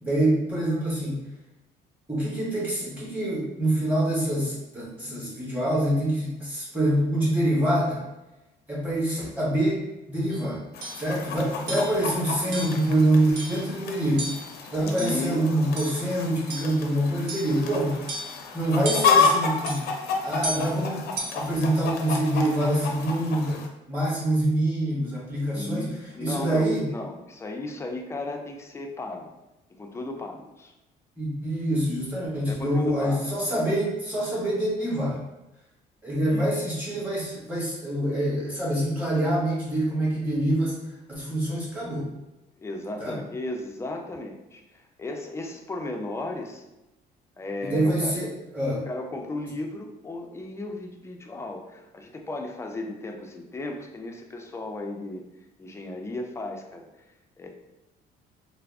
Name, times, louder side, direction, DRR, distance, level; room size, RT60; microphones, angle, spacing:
voice 1, 0.0-1.2 2.1-8.0 8.7-9.8 10.1-10.6 10.9-14.3 14.7-18.0 18.5-19.8 20.2-23.6 23.9-25.8 26.2-26.9 31.2-35.2 36.0-40.8 41.1-42.1 43.0-43.2 47.6-48.8, right 1 dB, 10° right, -7 dB, 1.5 m, -25 dB
sound 1, 10.3-10.4 10.8-11.1 11.7-12.0 12.5-12.8 13.4-13.7 14.2-14.5 15.0-15.4 15.8-16.0 16.5-16.8 17.3-17.6 18.1-18.4 18.8-19.3 19.7-19.9 20.4-20.7 21.2-21.5, right 1 dB, 80° right, 0.8 m, -34 dB
Chicken rooster, 10.7-23.7, left 5 dB, 70° left, 0.5 m, -30 dB
voice 2, 14.8-15.5 25.5-29.3 29.8-30.7 32.5-33.2 36.3-36.7 42.6-46.6 47.4-48.1 48.8-55.2 55.6-56.9 57.4-57.5, left 2 dB, 15° left, 3 dB, 0.4 m, -35 dB
3.4 x 2.0 x 3.4 m, 0.97 s
cardioid pair, 110°, 17 cm